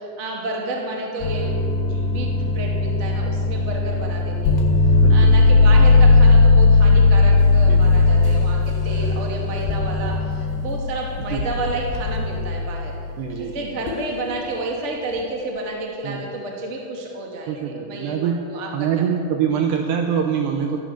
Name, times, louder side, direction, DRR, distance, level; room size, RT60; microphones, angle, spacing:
voice 1, 0.0-4.6 5.1-12.9 13.4-19.0, right 2 dB, 30° right, -1 dB, 1.3 m, -30 dB
sound 1, 1.2-13.0 13.9-14.2, left 3 dB, 70° left, 3.4 m, -17 dB
voice 2, 5.0-5.4 7.7-7.8 11.2-11.5 13.2-13.6 16.0-16.2 17.5-18.4 18.7-20.8, right 7 dB, 75° right, 4 dB, 2.6 m, -24 dB
14.0 x 11.5 x 8.3 m, 2.3 s
omnidirectional pair, 5.7 m